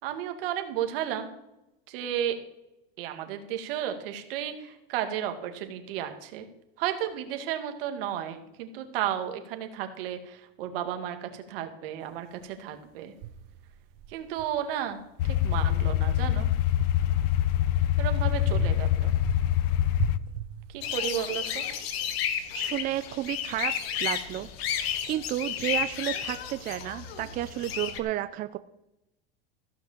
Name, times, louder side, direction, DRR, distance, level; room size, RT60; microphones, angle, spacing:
voice 1, 0.0-1.3 1.9-2.4 3.0-6.5 6.8-13.1 14.1-15.0 15.2-16.5 18.0-19.1 20.7-21.7, right 10 dB, 70° right, 7 dB, 2.2 m, -33 dB
sound 1, 12.4-12.5 13.2-15.1 15.5-17.9 18.4-21.2, right 10 dB, 55° right, 1.0 m, -39 dB
sound 2, 15.2-20.2, left 12 dB, 65° left, 0.8 m, -25 dB
sound 3, 20.8-28.0, left 9 dB, 90° left, 1.7 m, -32 dB
voice 2, 22.5-23.7 24.0-24.5 25.1-28.6, right 13 dB, 30° right, 12 dB, 0.4 m, -31 dB
15.0 x 6.0 x 7.3 m, 0.89 s
supercardioid pair, 150°, 29 cm